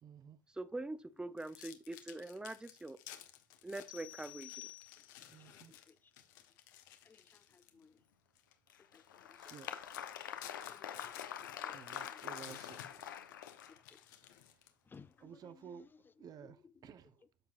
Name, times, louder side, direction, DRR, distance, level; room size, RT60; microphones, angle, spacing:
voice 1, 0.0-0.4 5.3-5.7 9.4-9.7 11.7-13.2 15.2-15.8 16.2-17.3, right 7 dB, 35° right, 1.0 m, -53 dB
voice 2, 0.5-3.0 3.6-4.7, right 2 dB, 10° right, 0.8 m, -44 dB
sound 1, 1.4-7.8 8.3-8.5 9.0-9.1 9.4-14.9, left 11 dB, 70° left, 1.3 m, -55 dB
sound 2, 3.9-5.4, left 17 dB, 55° left, 0.4 m, -52 dB
voice 3, 5.4-6.1 7.0-8.0 8.8-9.6 10.7-12.3 13.3-13.4 13.7-14.0 14.9-16.9, left 5 dB, 20° left, 0.6 m, -62 dB
Applause, 8.7-14.0, left 9 dB, 90° left, 1.0 m, -45 dB
13.5 x 4.6 x 2.5 m
hypercardioid pair, 95°, 10 cm